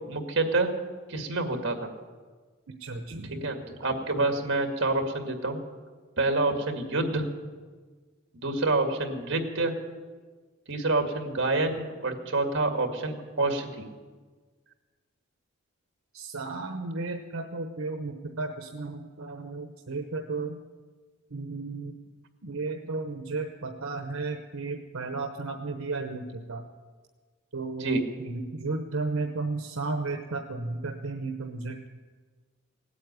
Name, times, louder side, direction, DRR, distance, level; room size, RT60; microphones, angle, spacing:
voice 1, 0.1-0.7 1.1-1.9 3.4-5.6 6.2-7.2 8.4-9.7 10.7-13.9 27.8-28.0, right 2 dB, 55° right, 4 dB, 2.0 m, -27 dB
voice 2, 2.8-3.5 16.1-20.6 21.3-21.9 22.4-26.6 27.5-31.8, right 3 dB, 80° right, 4 dB, 1.0 m, -34 dB
17.5 x 8.6 x 9.6 m, 1.4 s
head